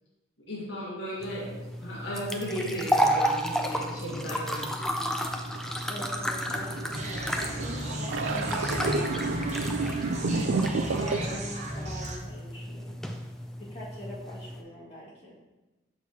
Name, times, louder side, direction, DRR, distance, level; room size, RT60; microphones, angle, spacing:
voice 1, 0.4-4.7 10.9-11.1, equal, 75° left, -6 dB, 1.7 m, -35 dB
sound 1, 1.2-14.6, equal, 5° left, 0.3 m, -32 dB
sound 2, 3.7-11.4, right 3 dB, 80° right, 0.4 m, -32 dB
voice 2, 5.9-10.1 11.0-13.0 13.6-15.4, left 1 dB, 35° left, -9 dB, 2.1 m, -43 dB
sound 3, 6.9-12.2, right 1 dB, 35° right, 0.7 m, -35 dB
6.5 x 6.0 x 2.9 m, 1.1 s
head